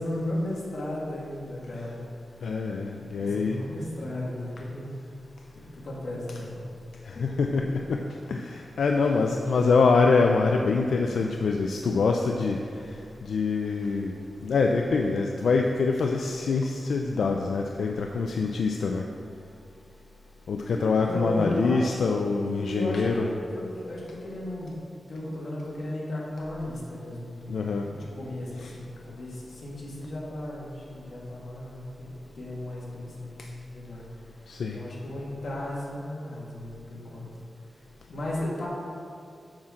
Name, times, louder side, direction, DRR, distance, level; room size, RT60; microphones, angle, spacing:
voice 1, 0.0-2.1 3.2-5.0 5.7-6.6 7.1-7.2 9.1-9.4 20.7-20.8 21.1-24.8 25.1-27.6 27.9-34.0 34.7-37.3 38.1-38.7, left 1 dB, 55° left, -5 dB, 1.9 m, -35 dB
voice 2, 2.4-3.6 7.0-8.0 8.3-12.6 13.2-14.2 14.4-19.0 20.5-23.3 27.5-27.9 28.6-28.7 34.5-34.8, left 4 dB, 85° left, 2 dB, 0.4 m, -25 dB
8.6 x 5.9 x 3.7 m, 2.4 s
wide cardioid pair, 155°, 0 cm